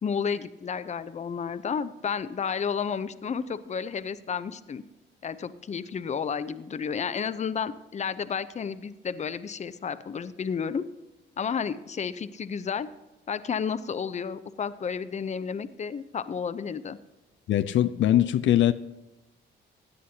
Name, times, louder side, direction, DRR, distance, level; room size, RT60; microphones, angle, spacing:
voice 1, 0.0-4.8 5.2-10.8 11.4-12.9 13.3-17.0, left 6 dB, 35° left, 13 dB, 0.7 m, -31 dB
voice 2, 17.5-18.7, left 12 dB, 70° left, 10 dB, 0.5 m, -21 dB
16.5 x 10.0 x 2.9 m, 1.1 s
cardioid pair, 90°, 20 cm